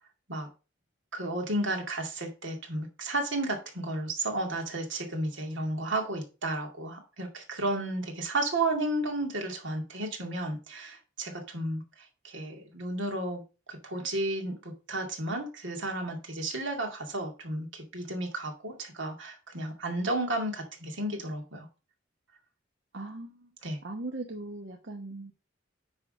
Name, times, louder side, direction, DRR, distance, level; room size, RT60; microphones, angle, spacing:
voice 1, 1.1-13.4 13.7-21.7 23.6-23.8, right 2 dB, 85° right, 2.3 m, -33 dB
voice 2, 22.9-23.5 23.8-25.3, right 2 dB, 65° right, 1.0 m, -39 dB
9.7 x 3.6 x 5.1 m
head